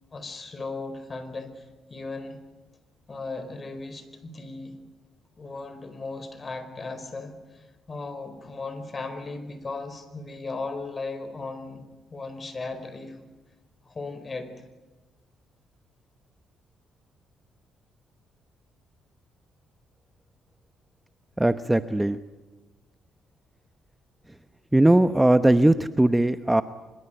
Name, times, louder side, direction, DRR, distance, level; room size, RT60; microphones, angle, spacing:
voice 1, 0.1-2.4 3.1-4.8 5.4-11.9 12.1-13.2 13.8-14.5, left 3 dB, 30° left, 11 dB, 4.5 m, -36 dB
voice 2, 21.4-22.2 24.7-26.6, right 1 dB, 10° right, 11 dB, 0.9 m, -19 dB
25.0 x 22.5 x 9.1 m, 1.2 s
cardioid pair, 90°, 0 cm